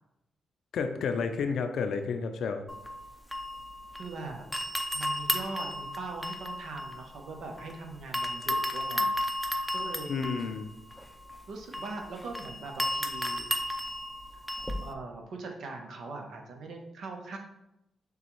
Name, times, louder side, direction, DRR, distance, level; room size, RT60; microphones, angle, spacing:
voice 1, 0.7-2.6 10.1-10.7, left 5 dB, 70° left, 6 dB, 0.5 m, -31 dB
sound 1, 2.7-4.2 4.5-7.7 8.1-14.9, left 1 dB, ahead, 0.5 m, -34 dB
voice 2, 4.0-4.4 4.9-9.1 9.7-10.1 11.5-13.5 14.8-17.4, right 3 dB, 75° right, 2 dB, 0.8 m, -41 dB
6.7 x 2.3 x 3.1 m, 0.86 s
cardioid pair, 75°, 0 cm